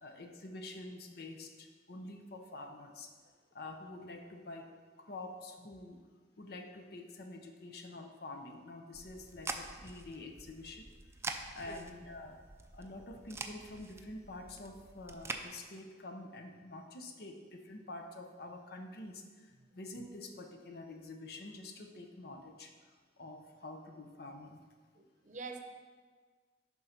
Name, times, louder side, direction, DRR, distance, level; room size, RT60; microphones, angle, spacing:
voice 1, 0.0-3.1 3.5-6.0 6.4-10.9 11.6-12.4 12.7-22.7 23.2-24.6, left 2 dB, 60° left, 4 dB, 0.8 m, -47 dB
sound 1, 8.9-15.4, right 3 dB, 15° right, 0.5 m, -45 dB
voice 2, 25.0-25.6, right 4 dB, 45° right, 4 dB, 0.8 m, -45 dB
10.5 x 3.9 x 5.8 m, 1.5 s
head